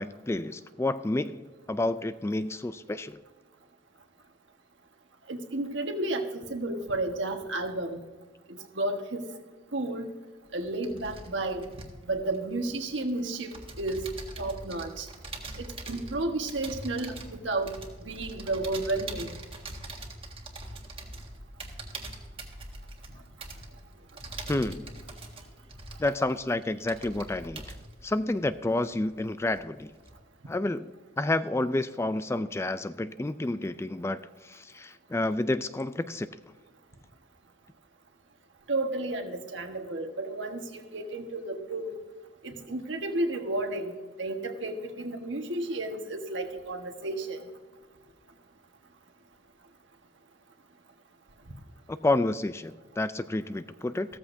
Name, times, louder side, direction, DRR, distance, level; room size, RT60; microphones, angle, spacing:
voice 1, 0.0-3.2 24.5-24.9 26.0-27.6 28.0-29.9 30.5-30.9 31.2-36.3 51.9-54.2, left 2 dB, 15° left, 13 dB, 0.3 m, -30 dB
voice 2, 5.3-8.0 8.5-9.3 9.7-10.1 10.5-11.6 12.1-13.5 13.8-14.0 14.4-15.1 15.6-17.8 18.0-19.4 38.7-42.0 42.4-47.4, right 2 dB, 75° right, 5 dB, 1.4 m, -32 dB
sound 1, 10.5-13.1 13.5-29.2 29.5-30.1, right 2 dB, 30° right, 1.6 m, -43 dB
15.0 x 14.0 x 2.7 m, 1.3 s
head